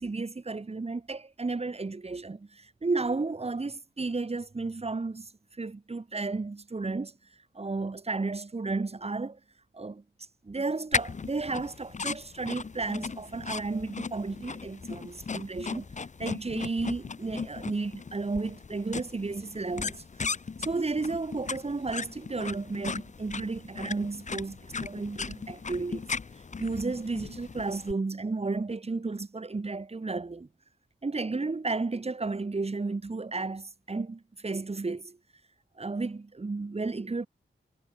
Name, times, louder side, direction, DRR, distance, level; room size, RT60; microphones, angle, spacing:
voice 1, 0.0-7.1 7.5-9.4 9.7-10.0 10.4-15.9 16.2-20.0 20.6-26.0 26.6-30.5 31.0-35.2 35.8-37.3, right 3 dB, 30° right, 0.9 m, -33 dB
sound 1, 10.9-27.9, left 5 dB, 35° left, 0.6 m, -37 dB
wide cardioid pair, 75°, 20 cm